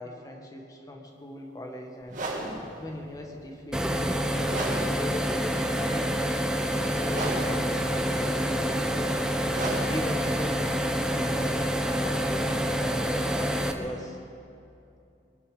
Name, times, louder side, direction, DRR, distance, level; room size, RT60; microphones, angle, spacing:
voice 1, 0.0-2.2 2.8-6.2 6.7-9.3 9.8-11.6 11.9-14.2, left 1 dB, 20° left, 2 dB, 1.7 m, -39 dB
sound 1, 2.0-11.9, right 1 dB, 45° right, 2.3 m, -37 dB
sound 2, 3.7-13.7, equal, 5° right, 0.9 m, -27 dB
22.5 x 11.0 x 5.3 m, 2.7 s
head